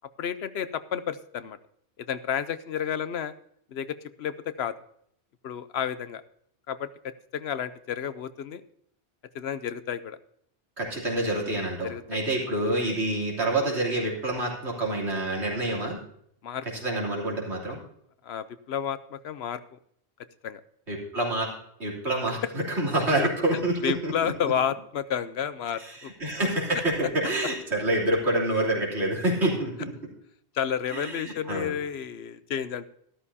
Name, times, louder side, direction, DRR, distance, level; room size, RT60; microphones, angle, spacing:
voice 1, 0.2-1.6 2.0-3.3 3.7-4.7 5.4-6.2 6.7-8.6 9.3-10.2 11.8-12.0 16.4-16.7 18.2-19.8 20.4-20.6 23.2-23.3 23.8-26.1 30.5-32.9, left 8 dB, 75° left, 13 dB, 0.9 m, -31 dB
voice 2, 10.8-16.0 16.8-17.8 20.9-21.5 21.8-24.3 25.8-29.9 30.9-31.7, right 1 dB, 90° right, -3 dB, 3.4 m, -27 dB
13.0 x 13.0 x 2.8 m, 0.67 s
omnidirectional pair, 1.1 m